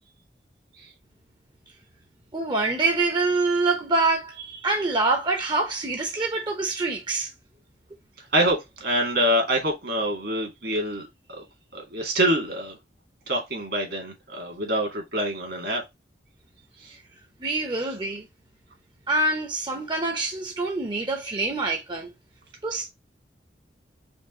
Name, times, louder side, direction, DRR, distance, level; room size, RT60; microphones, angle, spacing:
voice 1, 2.3-7.3 17.4-18.3 19.1-22.1 22.6-22.9, right 3 dB, 25° right, 0.7 m, -25 dB
voice 2, 8.3-11.4 11.7-12.8 13.3-15.8 16.8-16.9, right 1 dB, 70° right, 2.2 m, -26 dB
5.2 x 2.5 x 3.7 m
head